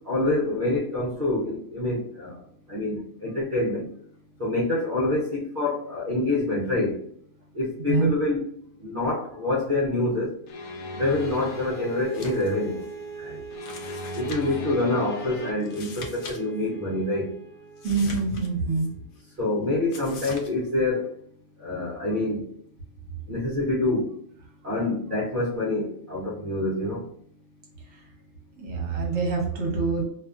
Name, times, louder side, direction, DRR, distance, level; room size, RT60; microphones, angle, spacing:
voice 1, 0.0-2.4 2.7-3.9 4.4-7.0 7.5-8.4 8.8-10.3 10.9-12.8 13.2-13.4 14.1-17.3 19.4-21.1 21.6-22.4 23.3-24.1 24.6-27.1, left 2 dB, 45° right, -7 dB, 0.7 m, -26 dB
sound 1, 10.5-12.1 13.5-15.5, left 3 dB, 85° left, 1.0 m, -38 dB
sound 2, 11.0-18.8, right 4 dB, 20° right, 0.9 m, -41 dB
sound 3, 12.0-12.5 12.8-12.9 13.6-14.6 15.6-16.4 16.6-16.7 17.8-18.9 19.9-20.5, left 3 dB, 65° left, 0.5 m, -42 dB
voice 2, 17.8-18.9 28.6-30.0, right 4 dB, 65° right, -1 dB, 1.1 m, -25 dB
2.6 x 2.3 x 2.3 m, 0.65 s
omnidirectional pair, 1.4 m